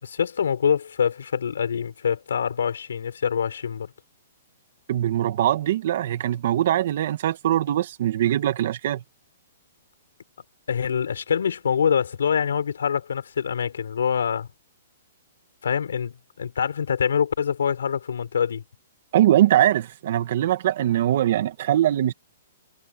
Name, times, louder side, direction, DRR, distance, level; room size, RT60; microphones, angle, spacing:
voice 1, 0.0-3.9 10.7-14.5 15.6-18.6, left 7 dB, 90° left, 4.3 m, -25 dB
voice 2, 4.9-9.0 19.1-22.1, right 12 dB, 50° right, 2.2 m, -22 dB
hypercardioid pair, 165°, 0 cm